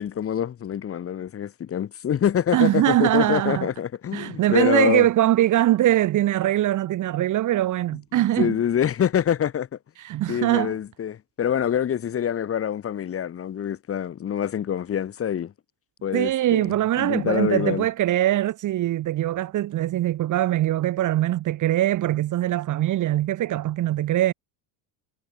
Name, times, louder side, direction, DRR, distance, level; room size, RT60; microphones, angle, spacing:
voice 1, 0.0-5.1 8.1-9.7 10.3-15.5 16.0-17.9, left 9 dB, 25° left, 3.7 m, -25 dB
voice 2, 2.5-3.7 4.1-8.5 10.0-10.7 16.1-24.3, right 13 dB, 35° right, 2.1 m, -22 dB
cardioid pair, 175°, 49 cm